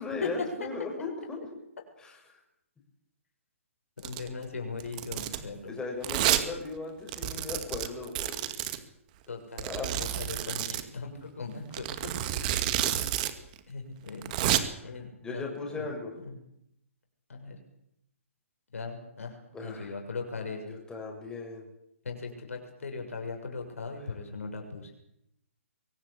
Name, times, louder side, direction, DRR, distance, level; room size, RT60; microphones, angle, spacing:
voice 1, 0.0-1.4 2.0-2.2 5.6-8.4 9.6-10.0 12.8-13.2 15.2-16.1 19.5-20.0 20.7-21.6, left 4 dB, 10° left, 0 dB, 6.4 m, -37 dB
voice 2, 4.0-5.8 9.3-12.1 12.6-12.9 13.7-14.3 14.8-15.9 16.2-16.4 17.3-17.5 18.7-20.8 22.0-24.9, left 4 dB, 70° left, 3 dB, 6.8 m, -39 dB
Domestic sounds home sounds, 4.0-4.3 4.8-5.4 6.0-6.4 6.7-6.8 7.1-8.8 9.6-10.8 11.7-13.3 13.6-13.7 14.1-14.6, right 13 dB, 35° right, 2.2 m, -30 dB
23.5 x 18.0 x 8.5 m, 0.76 s
figure-of-eight pair, 135°, 8 cm